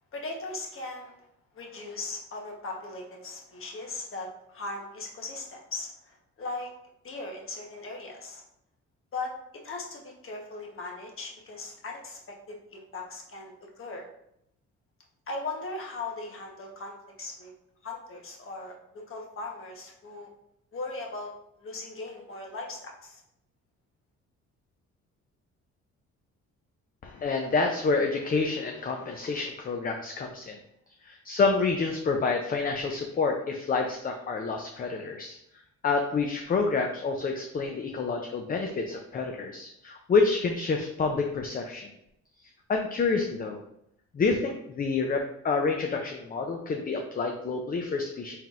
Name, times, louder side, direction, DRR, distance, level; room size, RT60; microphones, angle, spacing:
voice 1, 0.1-1.3 1.5-6.7 7.0-8.4 9.1-9.3 9.6-14.0 15.3-17.5 17.8-20.3 20.7-21.3 21.6-23.2, left 3 dB, 45° left, 1 dB, 1.1 m, -38 dB
voice 2, 27.0-30.6 31.0-35.4 35.8-41.9 42.7-43.6 44.1-48.4, left 4 dB, 30° left, 3 dB, 0.5 m, -28 dB
4.3 x 3.7 x 2.5 m, 0.78 s
cardioid pair, 90°, 30 cm